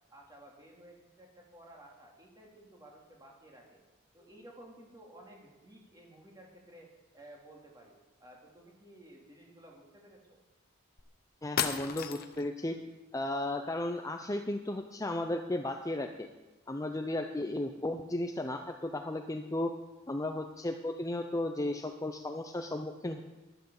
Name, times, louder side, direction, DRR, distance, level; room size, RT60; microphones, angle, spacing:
voice 1, 0.1-3.8 4.1-10.4, right 1 dB, 20° right, -1 dB, 2.8 m, -55 dB
sound 1, 11.0-11.1 11.6-12.5, left 8 dB, 50° left, 0.9 m, -33 dB
voice 2, 11.4-12.8 13.1-16.3 16.7-19.7 20.1-23.2, left 1 dB, 15° left, 5 dB, 0.6 m, -34 dB
11.5 x 11.0 x 7.0 m, 1.1 s
head